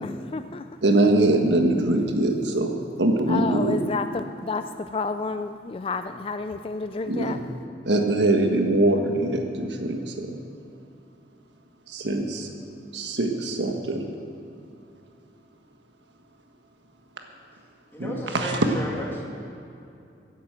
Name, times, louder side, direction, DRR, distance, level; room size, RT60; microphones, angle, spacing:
voice 1, 0.0-0.7 3.3-7.4, left 3 dB, 30° left, 9 dB, 0.3 m, -30 dB
voice 2, 0.8-2.7 3.0-3.8 7.1-7.4 7.8-10.4 11.9-12.5 12.9-14.0 18.0-18.6, right 2 dB, 85° right, 3 dB, 1.5 m, -23 dB
voice 3, 17.9-19.2, equal, 15° left, -4 dB, 2.5 m, -34 dB
16.0 x 8.4 x 7.5 m, 2.6 s
head